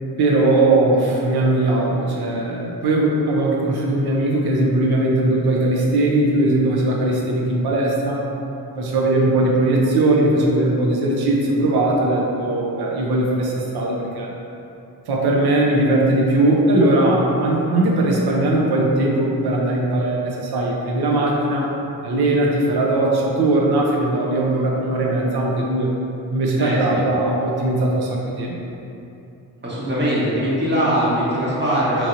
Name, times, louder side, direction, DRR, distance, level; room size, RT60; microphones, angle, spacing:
voice 1, 0.2-8.3 8.8-14.3 15.1-21.7 22.0-25.9 26.3-28.6, right 2 dB, 70° right, -2 dB, 0.7 m, -19 dB
voice 2, 26.6-27.0 29.6-32.1, equal, 30° right, -8 dB, 1.0 m, -21 dB
3.1 x 2.7 x 2.5 m, 2.7 s
cardioid pair, 50°, 39 cm